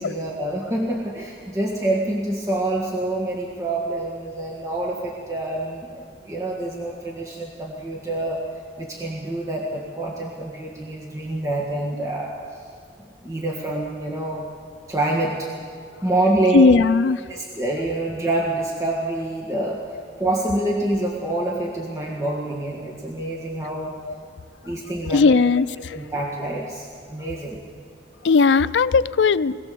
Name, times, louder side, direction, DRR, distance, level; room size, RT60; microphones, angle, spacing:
voice 1, 0.0-8.4 8.8-12.6 13.2-14.5 14.9-15.5 16.0-16.6 17.3-19.9 20.2-23.9 24.6-25.3 25.9-27.6, right 2 dB, 20° right, -2 dB, 1.8 m, -26 dB
voice 2, 16.5-17.2 25.1-25.7 28.2-29.5, left 4 dB, 85° left, 16 dB, 0.4 m, -16 dB
21.5 x 17.5 x 6.9 m, 2.3 s
head